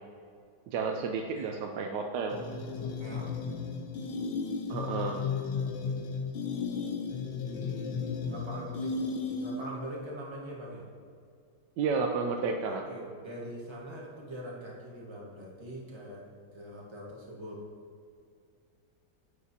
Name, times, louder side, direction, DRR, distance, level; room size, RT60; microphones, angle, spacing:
voice 1, 0.7-2.4 4.7-5.2 11.8-12.8, right 5 dB, 75° right, 2 dB, 1.2 m, -31 dB
sound 1, 2.3-9.8, left 5 dB, 85° left, 1.5 m, -34 dB
voice 2, 2.7-3.4 5.0-5.2 7.4-9.0 9.2-10.9 12.7-17.6, right 1 dB, 15° right, -3 dB, 1.2 m, -43 dB
9.5 x 8.4 x 2.8 m, 2.3 s
omnidirectional pair, 2.0 m